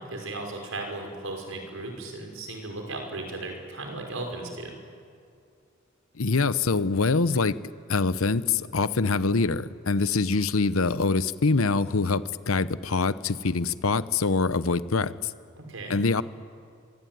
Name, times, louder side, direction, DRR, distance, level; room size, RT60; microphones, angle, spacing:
voice 1, 0.0-4.7 15.6-16.0, right 2 dB, 75° right, 3 dB, 5.5 m, -36 dB
voice 2, 6.2-7.6 7.9-15.3 15.9-16.2, left 4 dB, 90° left, 15 dB, 0.9 m, -24 dB
26.0 x 22.5 x 9.4 m, 2.4 s
head